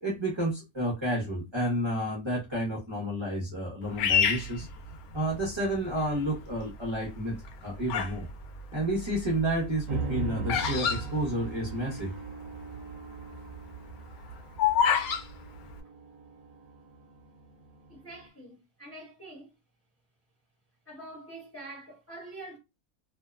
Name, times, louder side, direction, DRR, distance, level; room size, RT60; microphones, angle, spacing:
voice 1, 0.0-4.7 5.1-8.3 8.7-12.1, right 1 dB, 25° right, 0.7 m, -30 dB
Bird vocalization bird call bird song, 4.0-5.5 6.1-6.6 7.3-8.2 8.5-12.0 12.3-12.4 12.5-12.9 13.3-15.2, left 7 dB, 90° left, 1.0 m, -27 dB
sound 1, 9.9-18.3, right 3 dB, 55° right, 1.1 m, -40 dB
voice 2, 17.9-19.5 20.8-22.6, right 2 dB, 10° left, 1.0 m, -45 dB
2.7 x 2.1 x 2.3 m
omnidirectional pair, 1.5 m